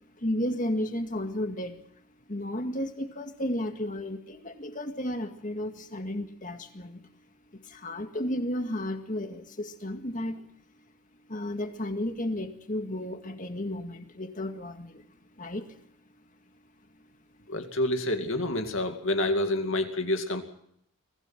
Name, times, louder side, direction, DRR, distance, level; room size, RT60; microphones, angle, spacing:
voice 1, 0.2-1.8 2.3-7.1 7.6-10.5 11.3-15.0 15.4-15.8 17.4-17.5, left 1 dB, 35° left, 7 dB, 2.0 m, -33 dB
voice 2, 17.5-20.4, left 1 dB, 60° left, 6 dB, 2.4 m, -28 dB
24.0 x 17.0 x 7.5 m, 0.70 s
head